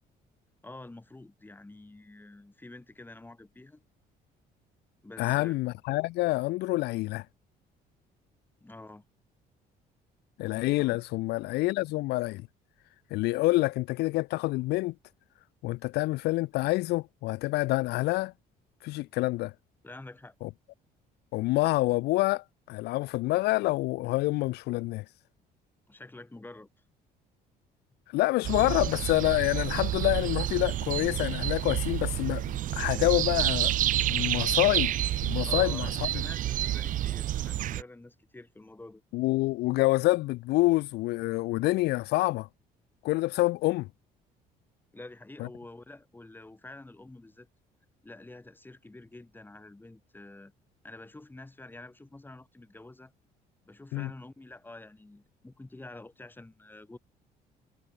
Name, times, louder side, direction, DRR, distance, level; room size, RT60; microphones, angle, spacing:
voice 1, 0.6-3.8 5.0-5.6 8.6-9.0 10.8-11.0 19.8-20.3 25.9-26.7 35.4-39.0 44.9-47.5 48.0-50.5 50.8-53.1 53.6-57.0, left 2 dB, 10° left, 4.5 m, -48 dB
voice 2, 5.2-7.2 10.4-12.4 13.1-14.9 15.6-18.3 18.8-19.5 20.4-20.5 21.3-25.0 28.1-33.7 34.1-34.9 35.2-36.2 39.1-42.5 43.0-43.9 45.4-45.5 53.9-54.1, left 20 dB, 75° left, 0.4 m, -27 dB
sound 1, 28.4-37.8, right 13 dB, 50° right, 0.4 m, -29 dB
cardioid pair, 110°, 17 cm